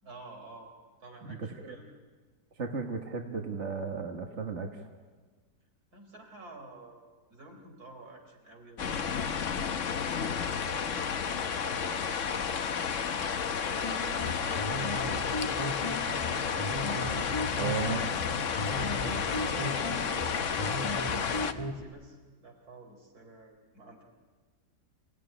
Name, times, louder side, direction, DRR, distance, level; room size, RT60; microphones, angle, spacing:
voice 1, 0.0-0.7 1.0-1.9 5.9-9.7 10.4-16.2 17.4-17.9 18.9-24.0, right 2 dB, 60° right, 2 dB, 4.3 m, -50 dB
voice 2, 1.2-1.8 2.6-4.7 17.5-18.0, right 5 dB, 45° right, 3 dB, 1.6 m, -35 dB
sound 1, 8.8-21.5, left 6 dB, 50° left, 1.2 m, -31 dB
sound 2, 13.8-21.8, equal, 15° left, 1.6 m, -37 dB
27.5 x 17.0 x 9.9 m, 1.5 s
omnidirectional pair, 1.8 m